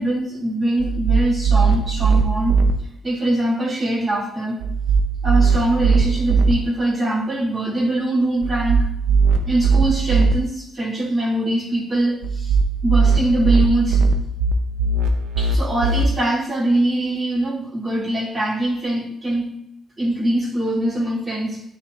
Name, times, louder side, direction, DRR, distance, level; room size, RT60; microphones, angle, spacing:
voice 1, 0.0-2.7 3.0-4.6 5.2-8.9 9.4-12.6 12.8-14.0 15.4-19.6 20.0-21.6, right 1 dB, 25° right, -5 dB, 2.3 m, -22 dB
sound 1, 0.8-2.7 4.6-6.5 8.4-10.3 12.2-16.0, right 4 dB, 85° right, 0.6 m, -19 dB
10.0 x 4.2 x 2.5 m, 0.80 s
cardioid pair, 90°, 0 cm